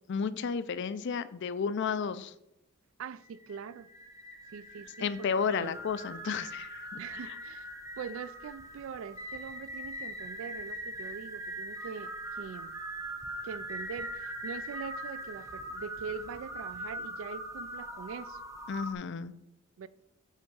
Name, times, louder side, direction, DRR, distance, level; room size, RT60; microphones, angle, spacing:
voice 1, 0.1-2.3 5.0-7.0 18.7-19.3, left 6 dB, 55° left, 0.4 m, -32 dB
voice 2, 3.0-3.9 4.5-5.8 7.0-7.7 8.0-12.8 13.4-18.4 19.8-19.9, right 6 dB, 70° right, 0.3 m, -43 dB
sound 1, 3.2-18.9, right 1 dB, 15° right, 0.8 m, -41 dB
8.1 x 3.5 x 6.2 m
head